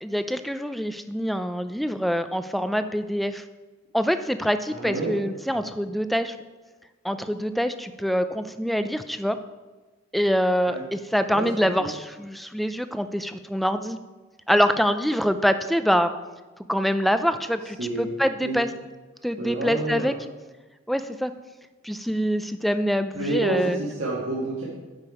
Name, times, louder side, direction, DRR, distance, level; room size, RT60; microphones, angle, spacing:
voice 1, 0.0-3.4 3.9-6.4 7.0-9.4 10.1-14.0 14.5-16.1 16.7-18.7 19.2-20.1 20.9-21.3 21.8-23.8, equal, ahead, 10 dB, 0.3 m, -25 dB
voice 2, 4.7-5.1 10.7-10.8 11.3-11.5 11.8-11.9 17.8-18.1 18.4-18.6 19.4-20.1 23.1-24.6, right 2 dB, 75° right, -6 dB, 1.6 m, -28 dB
9.1 x 5.2 x 4.7 m, 1.2 s
head